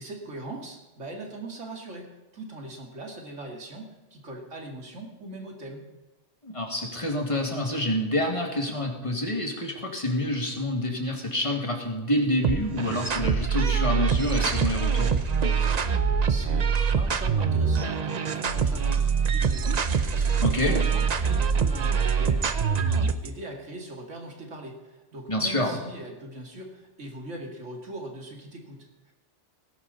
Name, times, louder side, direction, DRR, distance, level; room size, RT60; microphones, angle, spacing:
voice 1, 0.0-5.8 16.3-29.1, right 1 dB, 80° right, 1 dB, 2.6 m, -41 dB
voice 2, 6.4-15.1 20.4-20.7 25.3-25.8, left 1 dB, 25° left, 1 dB, 2.2 m, -27 dB
sound 1, 12.4-23.3, right 6 dB, 40° right, 0.7 m, -24 dB
18.5 x 11.0 x 4.1 m, 1.1 s
omnidirectional pair, 1.3 m